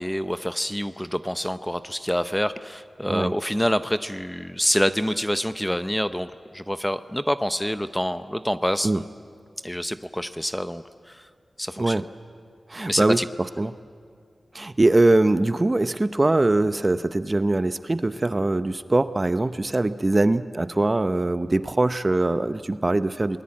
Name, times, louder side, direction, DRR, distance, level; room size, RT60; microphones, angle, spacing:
voice 1, 0.0-8.9 9.6-11.3 11.6-12.0 12.9-13.3, equal, 5° left, 11 dB, 0.7 m, -27 dB
voice 2, 12.7-13.2 13.6-13.7 14.5-23.4, right 2 dB, 30° right, 12 dB, 0.8 m, -22 dB
28.5 x 19.5 x 8.7 m, 2.2 s
wide cardioid pair, 75°, 0 cm